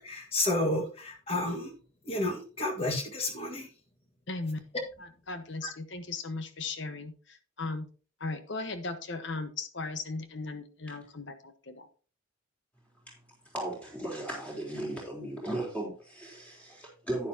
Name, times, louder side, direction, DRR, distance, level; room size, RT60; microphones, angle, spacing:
voice 1, 0.0-1.7 2.0-3.7, left 2 dB, 30° left, 3 dB, 1.6 m, -31 dB
voice 2, 4.3-4.6 5.0-7.9 8.2-11.9, left 3 dB, 55° left, 9 dB, 1.1 m, -37 dB
voice 3, 13.5-17.3, right 1 dB, 5° left, -3 dB, 3.6 m, -36 dB
10.5 x 10.0 x 2.8 m, 0.38 s
head